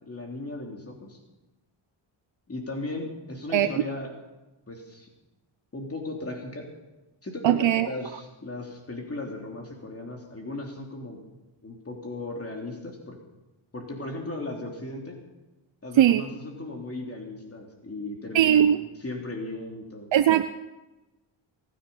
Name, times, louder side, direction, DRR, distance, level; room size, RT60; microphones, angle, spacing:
voice 1, 0.0-1.2 2.5-4.1 4.7-5.1 5.7-6.6 7.2-11.2 11.6-13.1 13.7-15.2 15.8-18.7 19.0-20.1, left 2 dB, 30° left, 1 dB, 3.3 m, -36 dB
voice 2, 7.4-7.9 15.9-16.2 18.3-18.8 20.1-20.4, right 11 dB, 65° right, 11 dB, 0.7 m, -19 dB
24.0 x 10.0 x 5.6 m, 1.1 s
cardioid pair, 80°, 49 cm